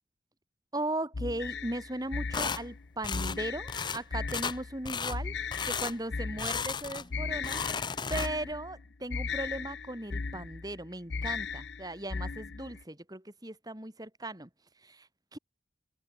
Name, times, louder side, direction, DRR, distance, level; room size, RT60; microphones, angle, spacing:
voice 1, 0.7-5.4 5.6-7.6 8.1-14.5 14.8-15.4, right 1 dB, 20° right, 3.0 m, -37 dB
sound 1, 1.1-12.8, left 4 dB, 80° left, 0.8 m, -37 dB
sound 2, 2.3-2.6 3.0-3.4 3.7-4.0 4.3-4.6 4.8-5.2 5.5-5.9 6.4-7.1 7.4-8.5, left 6 dB, 25° left, 0.7 m, -34 dB
open air
head